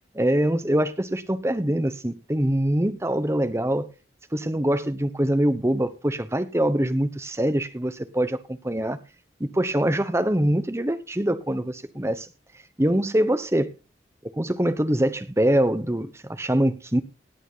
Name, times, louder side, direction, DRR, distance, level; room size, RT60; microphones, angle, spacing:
voice 1, 0.1-3.9 4.3-9.0 9.4-12.3 12.8-13.7 14.4-17.0, right 1 dB, 15° right, 1.0 m, -24 dB
18.0 x 9.0 x 3.8 m
head